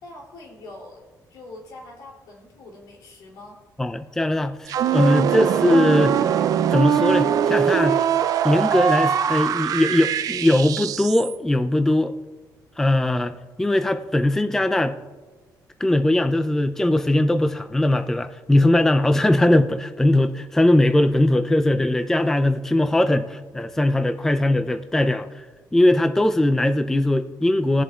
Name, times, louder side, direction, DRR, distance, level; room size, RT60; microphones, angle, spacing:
voice 1, 0.0-1.0 1.3-3.6, left 2 dB, 75° left, -1 dB, 2.8 m, -43 dB
voice 2, 3.8-6.3 6.7-8.1 8.4-12.1 12.8-14.9 15.8-25.4 25.7-27.8, left 1 dB, 5° left, 9 dB, 0.4 m, -20 dB
sound 1, 4.7-11.3, right 8 dB, 60° right, 0.4 m, -22 dB
20.5 x 7.3 x 2.3 m, 1.3 s
cardioid pair, 140°, 7 cm